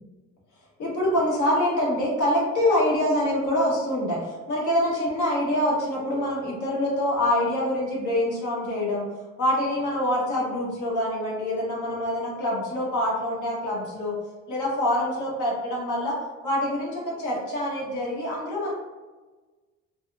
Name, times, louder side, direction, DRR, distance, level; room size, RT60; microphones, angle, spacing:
voice 1, 0.8-9.1 9.4-14.2 14.5-16.2 16.4-18.7, left 1 dB, 75° left, -4 dB, 1.3 m, -25 dB
3.3 x 2.8 x 2.5 m, 1.3 s
cardioid pair, 90°, 30 cm